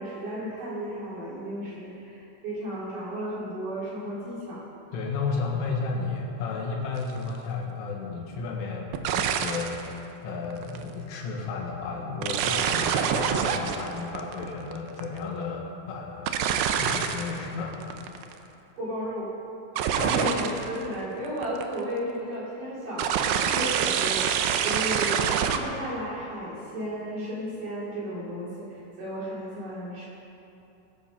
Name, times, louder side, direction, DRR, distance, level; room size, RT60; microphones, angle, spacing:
voice 1, 0.0-4.6 18.8-19.3 19.9-30.1, equal, 45° right, -8 dB, 5.2 m, -34 dB
voice 2, 4.9-16.4 16.7-17.8 20.0-20.1, left 4 dB, 80° left, -1 dB, 4.3 m, -33 dB
sound 1, 7.0-7.2 8.9-9.8 10.5-10.8 12.2-15.2 16.3-17.4 17.7-18.3 19.8-20.8 21.2-21.8 23.0-25.6, right 8 dB, 85° right, 2.5 m, -26 dB
21.5 x 10.5 x 5.3 m, 2.9 s
omnidirectional pair, 5.6 m